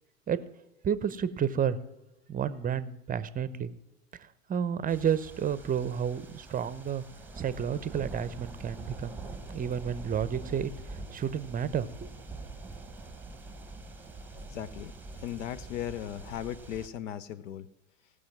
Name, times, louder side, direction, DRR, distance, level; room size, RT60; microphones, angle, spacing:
voice 1, 0.8-1.8 2.3-3.7 4.5-7.0 7.4-9.1 9.5-12.1, right 8 dB, 20° right, 15 dB, 0.7 m, -31 dB
sound 1, 4.9-16.9, right 3 dB, 5° right, 1.1 m, -44 dB
voice 2, 14.4-17.7, left 10 dB, 75° left, 18 dB, 0.7 m, -38 dB
17.5 x 6.3 x 6.0 m, 0.94 s
hypercardioid pair, 85°, 38 cm